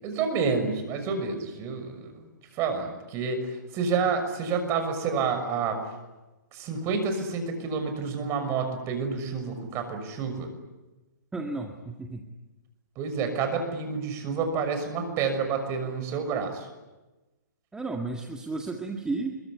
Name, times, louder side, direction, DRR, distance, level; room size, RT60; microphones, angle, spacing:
voice 1, 0.0-5.8 6.5-10.5 13.0-16.7, right 5 dB, 30° right, 7 dB, 6.4 m, -29 dB
voice 2, 11.3-12.3 17.7-19.4, right 3 dB, 5° right, 2 dB, 2.0 m, -33 dB
25.5 x 23.0 x 9.9 m, 1.1 s
hypercardioid pair, 130°, 10 cm